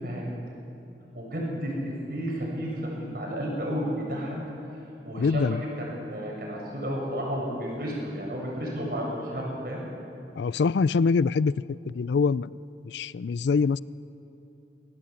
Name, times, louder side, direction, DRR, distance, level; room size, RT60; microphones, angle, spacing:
voice 1, 1.1-4.4 5.0-9.9, equal, 55° right, -2 dB, 7.5 m, -32 dB
voice 2, 5.2-5.6 10.4-11.5 11.9-12.5 12.8-13.8, left 4 dB, 75° left, 19 dB, 0.4 m, -24 dB
22.5 x 18.0 x 8.4 m, 2.9 s
head